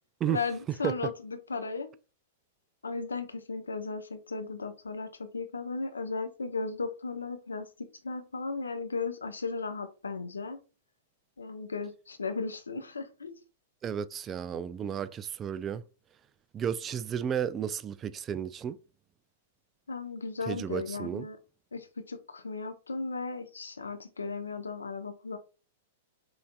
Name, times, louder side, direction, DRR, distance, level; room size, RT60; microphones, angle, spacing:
voice 1, 0.3-1.9 2.8-7.7 8.0-10.6 11.4-13.4 19.9-21.4 21.7-25.4, left 4 dB, 90° left, 0.8 m, -36 dB
voice 2, 13.8-15.8 16.5-18.8 20.5-21.3, right 8 dB, 25° right, 0.3 m, -33 dB
5.4 x 2.7 x 2.2 m
hypercardioid pair, 105°, 0 cm